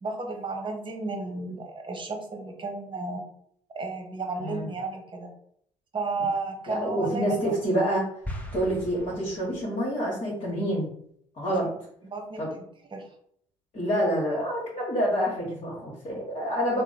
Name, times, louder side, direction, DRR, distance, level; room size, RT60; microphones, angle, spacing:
voice 1, 0.0-3.2 3.7-5.3 5.9-7.6 11.6-11.7 12.0-12.6 12.9-13.0, right 3 dB, 30° right, 2 dB, 0.9 m, -33 dB
voice 2, 4.4-4.7 6.7-8.0 8.5-10.9 11.4-11.6 12.4-12.5 13.7-16.8, equal, 50° left, -6 dB, 1.4 m, -27 dB
sound 1, 8.2-9.9, left 1 dB, 10° left, 0.8 m, -39 dB
3.0 x 2.1 x 3.9 m, 0.66 s
hypercardioid pair, 50°, 17 cm